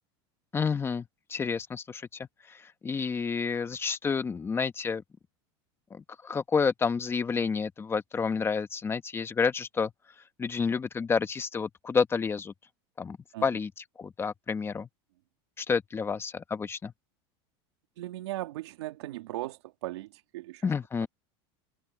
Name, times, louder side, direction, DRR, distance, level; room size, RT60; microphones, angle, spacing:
voice 1, 0.5-5.0 5.9-9.9 10.4-12.5 13.0-14.9 15.6-16.9 20.6-21.1, left 5 dB, 15° left, 1.4 m, -30 dB
voice 2, 18.0-20.7, right 16 dB, 90° right, 2.4 m, -38 dB
open air
supercardioid pair, 135°, 14 cm